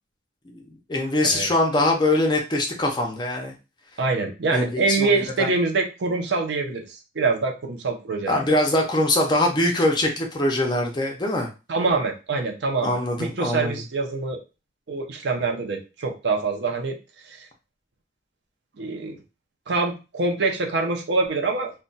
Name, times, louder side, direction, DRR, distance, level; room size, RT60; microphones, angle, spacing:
voice 1, 0.9-3.5 4.5-5.5 8.3-11.5 12.8-13.8, left 1 dB, 25° left, 1 dB, 0.5 m, -23 dB
voice 2, 4.0-8.4 11.7-14.4 14.9-17.0 17.3-17.5 18.8-19.2 19.7-21.7, right 3 dB, 65° right, 3 dB, 0.5 m, -25 dB
2.2 x 2.2 x 3.9 m, 0.30 s
head